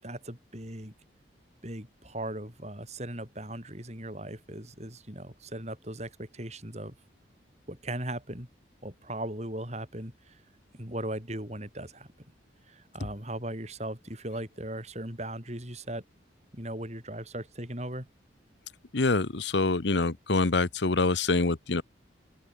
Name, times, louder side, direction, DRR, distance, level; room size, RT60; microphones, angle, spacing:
voice 1, 0.0-0.9 1.6-6.9 7.7-8.5 8.8-10.4 10.7-12.1 12.7-16.0 16.5-18.1, right 1 dB, 35° right, 6.8 m, -38 dB
voice 2, 18.9-21.8, left 3 dB, 70° left, 1.0 m, -25 dB
open air
head